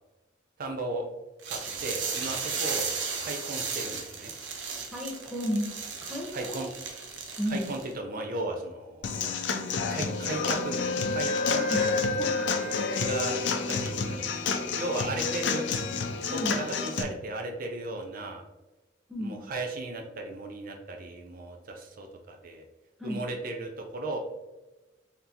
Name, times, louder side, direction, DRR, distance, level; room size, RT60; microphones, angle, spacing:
voice 1, 0.6-1.1 1.5-4.3 6.3-6.7 7.5-9.3 9.9-15.7 16.3-18.4 19.2-22.6 23.0-24.2, right 2 dB, 50° right, 3 dB, 0.5 m, -36 dB
sound 1, 1.4-7.9, right 5 dB, 80° right, 0.7 m, -35 dB
voice 2, 4.9-5.7 6.0-6.6 7.4-7.7 11.7-11.9 12.2-12.3 16.3-16.6 19.1-19.4 23.0-23.2, equal, ahead, -2 dB, 0.7 m, -32 dB
Human voice / Acoustic guitar / Drum, 9.0-17.0, left 5 dB, 80° left, 0.5 m, -30 dB
Wind instrument woodwind instrument, 10.0-14.2, left 2 dB, 45° left, 1.0 m, -32 dB
3.9 x 3.5 x 2.8 m, 1.1 s
head